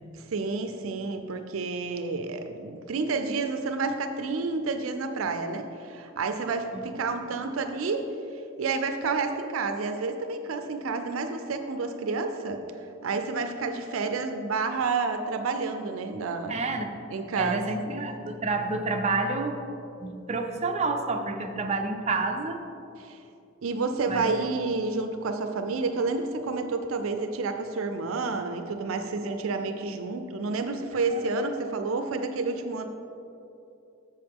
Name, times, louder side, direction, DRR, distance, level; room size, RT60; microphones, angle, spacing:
voice 1, 0.1-8.1 8.6-12.6 13.0-16.6 17.1-17.6 23.0-23.2 23.6-32.9, right 4 dB, 80° right, 7 dB, 0.5 m, -30 dB
voice 2, 16.5-16.9 17.4-19.6 20.0-22.6 24.1-24.3 31.1-31.2, right 3 dB, 35° right, 4 dB, 0.6 m, -29 dB
7.7 x 6.7 x 3.6 m, 2.8 s
head